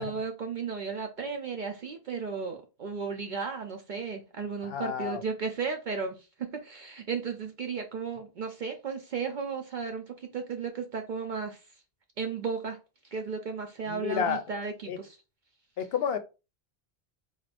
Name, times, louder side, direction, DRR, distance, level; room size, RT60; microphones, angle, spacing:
voice 1, 0.0-11.7 12.2-12.8 13.0-15.2, right 5 dB, 55° right, 0.6 m, -34 dB
voice 2, 4.6-5.2 13.9-14.4 14.9-15.0 15.8-16.2, left 8 dB, 75° left, 0.8 m, -30 dB
3.9 x 2.5 x 3.3 m
omnidirectional pair, 1.1 m